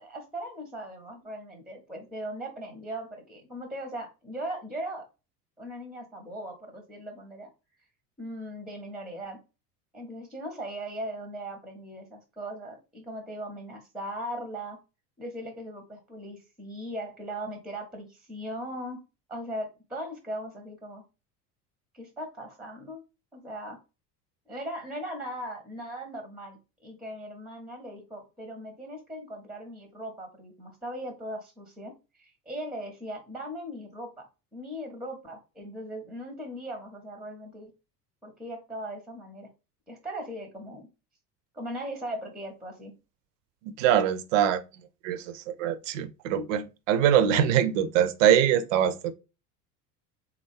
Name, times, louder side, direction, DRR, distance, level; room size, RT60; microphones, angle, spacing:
voice 1, 0.0-5.0 5.6-7.5 8.2-9.4 9.9-14.8 15.2-19.0 19.3-21.0 21.9-23.0 23.3-23.8 24.5-34.3 34.5-37.7 38.2-39.5 39.9-40.9 41.5-42.9, right 1 dB, ahead, 0.7 m, -39 dB
voice 2, 43.6-44.6 45.0-49.1, right 10 dB, 55° right, 0.5 m, -23 dB
3.6 x 2.3 x 3.3 m
figure-of-eight pair, 70°, 47 cm